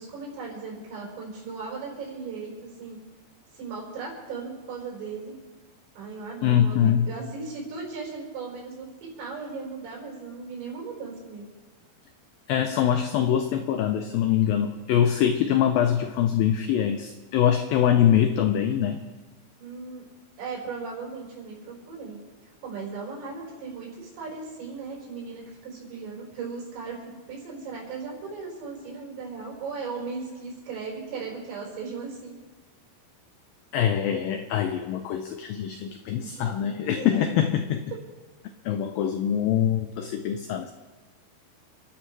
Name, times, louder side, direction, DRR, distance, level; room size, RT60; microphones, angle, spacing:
voice 1, 0.0-3.0 3.5-5.4 6.0-11.5 19.6-20.1 20.4-22.2 22.6-27.0 27.3-32.4 36.2-36.5 37.0-37.2, right 4 dB, 85° right, -4 dB, 7.1 m, -37 dB
voice 2, 6.4-7.1 12.5-19.0 33.7-37.8 38.7-40.7, left 9 dB, 90° left, 7 dB, 2.0 m, -23 dB
29.5 x 11.5 x 3.3 m, 1.3 s
omnidirectional pair, 5.0 m